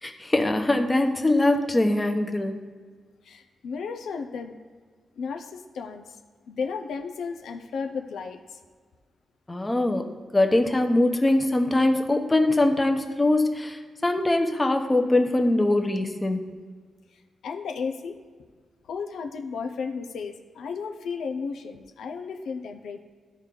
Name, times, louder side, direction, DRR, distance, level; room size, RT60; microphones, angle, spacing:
voice 1, 0.0-2.6 9.5-16.5, left 2 dB, 20° left, 5 dB, 1.0 m, -22 dB
voice 2, 3.2-4.6 5.2-6.2 6.5-8.6 17.1-18.2 18.8-23.0, left 5 dB, 80° left, 6 dB, 0.6 m, -34 dB
13.0 x 4.5 x 3.9 m, 1.5 s
cardioid pair, 65°, 0 cm